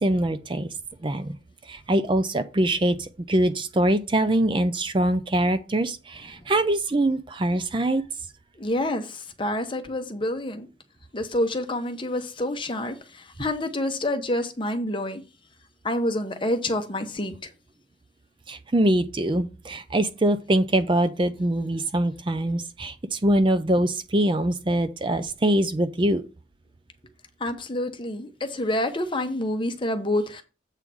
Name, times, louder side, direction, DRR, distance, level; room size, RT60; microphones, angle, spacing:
voice 1, 0.0-0.7 1.0-1.4 1.7-8.0 18.5-26.2, right 1 dB, 25° right, 0.5 m, -23 dB
voice 2, 8.6-10.7 11.1-15.2 15.8-17.3 27.4-30.4, left 1 dB, 25° left, 1.0 m, -28 dB
8.1 x 3.7 x 6.1 m
head